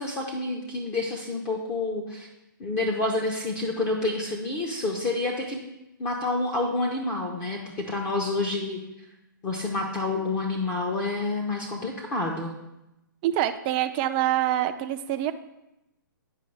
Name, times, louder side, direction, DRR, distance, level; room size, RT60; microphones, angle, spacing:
voice 1, 0.0-2.3 2.6-5.6 6.0-8.8 9.4-12.5, left 2 dB, 25° left, -1 dB, 0.7 m, -28 dB
voice 2, 13.2-15.3, right 12 dB, 25° right, 9 dB, 0.4 m, -25 dB
9.2 x 5.2 x 3.3 m, 0.92 s
hypercardioid pair, 135°, 11 cm